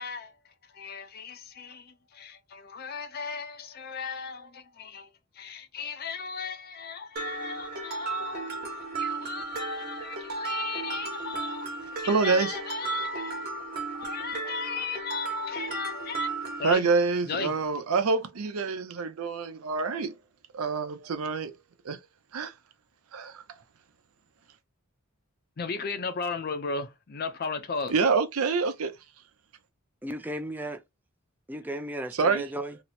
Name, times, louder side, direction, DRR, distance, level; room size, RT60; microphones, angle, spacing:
voice 1, 0.0-8.6 9.0-13.5 13.9-16.3 16.6-16.9 17.2-17.5 25.6-28.0, left 5 dB, 45° left, 0.5 m, -36 dB
Mallet percussion, 7.2-16.7, right 4 dB, 45° right, 1.1 m, -35 dB
voice 2, 12.1-12.6 16.6-20.2 20.5-21.5 21.8-22.0 22.3-22.5 23.1-23.4 27.9-28.9 32.2-32.4, right 4 dB, 90° right, 0.6 m, -26 dB
voice 3, 30.0-30.8 31.5-32.8, right 1 dB, 10° right, 0.4 m, -35 dB
2.9 x 2.1 x 4.0 m
head